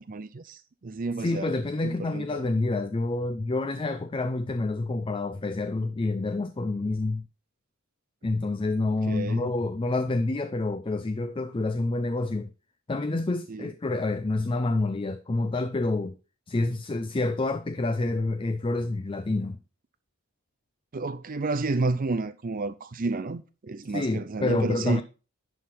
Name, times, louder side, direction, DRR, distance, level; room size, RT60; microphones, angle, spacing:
voice 1, 0.0-1.5 1.8-2.4 9.1-9.5 13.5-13.7 20.9-25.0, right 3 dB, 40° right, 0.5 m, -31 dB
voice 2, 1.2-7.2 8.2-12.5 12.9-16.2 16.5-19.6 23.9-25.0, left 2 dB, 25° left, 0.4 m, -28 dB
11.0 x 3.7 x 5.9 m
head